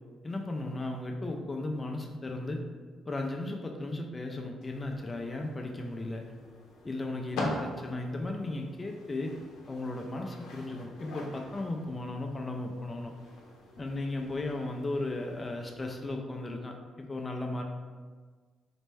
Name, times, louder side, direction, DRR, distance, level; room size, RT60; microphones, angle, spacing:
voice 1, 0.2-2.6 3.1-6.3 6.8-9.4 9.7-13.1 13.8-17.6, left 2 dB, 25° left, 2 dB, 0.4 m, -35 dB
sound 1, 4.6-16.1, left 1 dB, 85° left, 0.6 m, -44 dB
4.2 x 2.1 x 3.3 m, 1.5 s
cardioid pair, 90°, 0 cm